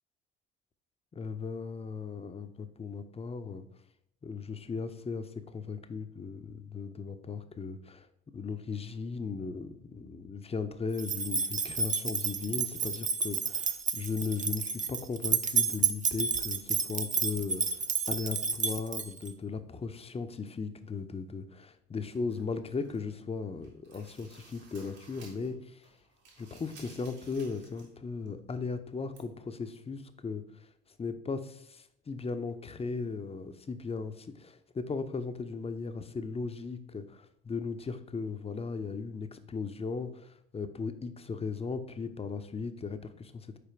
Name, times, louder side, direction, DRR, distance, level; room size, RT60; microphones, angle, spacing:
voice 1, 1.1-3.6 4.2-25.9 26.4-30.7 31.0-43.5, left 4 dB, 20° left, 10 dB, 0.6 m, -37 dB
sound 1, 11.0-19.3, right 5 dB, 25° right, 0.6 m, -30 dB
sound 2, 22.1-23.1 23.5-25.6 25.8-28.0 28.3-28.4 29.1-29.2, right 4 dB, 75° right, 1.9 m, -56 dB
5.1 x 4.6 x 4.4 m, 0.75 s
hypercardioid pair, 55°, 32 cm